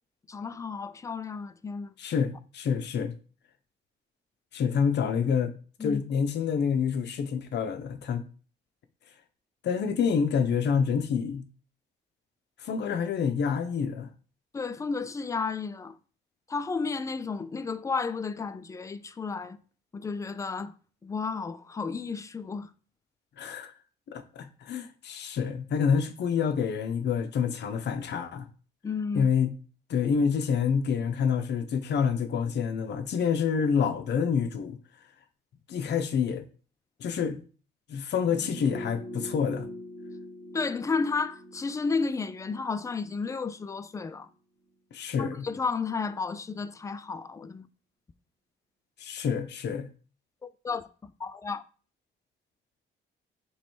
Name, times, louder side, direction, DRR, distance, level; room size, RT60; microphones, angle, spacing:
voice 1, 0.3-1.9 5.8-6.0 14.5-16.0 16.5-19.6 19.9-20.7 21.0-22.7 28.8-29.3 40.5-44.3 45.2-47.7 50.4-50.9 51.2-51.6, left 4 dB, 15° left, 0.3 m, -32 dB
voice 2, 2.0-3.1 4.5-5.5 5.8-8.2 9.6-11.5 12.6-14.1 23.4-23.7 24.1-28.5 29.1-29.5 29.9-34.8 35.7-36.5 37.0-37.4 37.9-39.7 44.9-45.4 49.0-49.9, left 6 dB, 60° left, 0.6 m, -27 dB
sound 1, 38.2-43.4 43.7-43.8, equal, 60° right, 2.1 m, -43 dB
3.0 x 3.0 x 4.4 m
cardioid pair, 90°, 20 cm